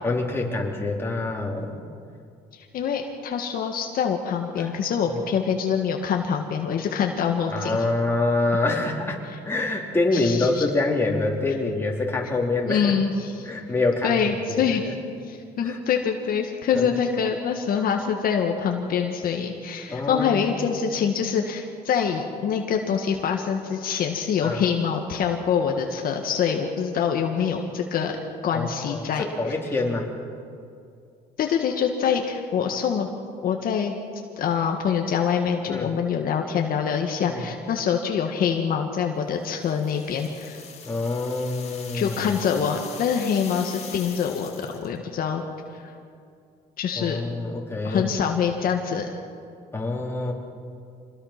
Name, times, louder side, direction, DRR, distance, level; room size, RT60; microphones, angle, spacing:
voice 1, 0.0-1.8 4.6-4.7 5.1-5.2 7.5-12.9 13.4-14.1 14.5-14.8 15.6-15.8 16.7-16.9 19.9-20.6 24.4-24.6 28.5-30.1 35.7-36.0 37.3-37.4 40.8-42.2 47.0-48.1 49.7-50.3, left 2 dB, 15° left, -1 dB, 3.6 m, -26 dB
voice 2, 2.5-7.8 10.1-10.6 12.6-13.5 14.0-14.8 15.3-28.1 28.4-29.2 31.4-33.1 33.4-33.9 34.4-40.6 41.9-45.8 46.8-47.2 47.8-49.1, left 7 dB, 60° left, 3 dB, 1.7 m, -25 dB
sound 1, 39.4-45.0, left 6 dB, 40° left, 2.7 m, -42 dB
26.0 x 20.5 x 6.0 m, 2.4 s
cardioid pair, 110°, 17 cm